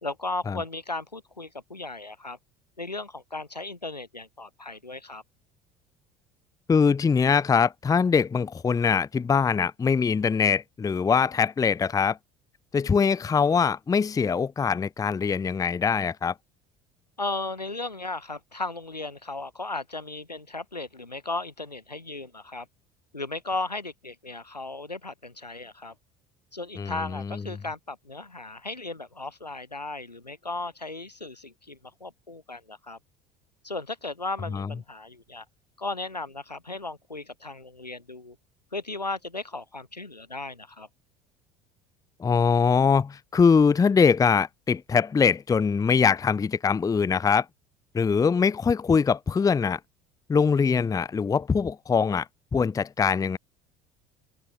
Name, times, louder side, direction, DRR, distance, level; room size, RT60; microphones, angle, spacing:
voice 1, 0.0-2.4 2.8-5.2 17.2-22.7 23.1-25.9 26.5-33.0 33.6-35.4 35.8-38.4 38.7-40.9, left 2 dB, 90° left, 4.6 m, -36 dB
voice 2, 6.7-12.2 12.7-16.3 26.8-27.0 34.5-34.7 42.2-47.4 47.9-49.8 50.3-52.2 52.5-53.4, left 6 dB, 15° left, 0.7 m, -22 dB
figure-of-eight pair, 65°, 20 cm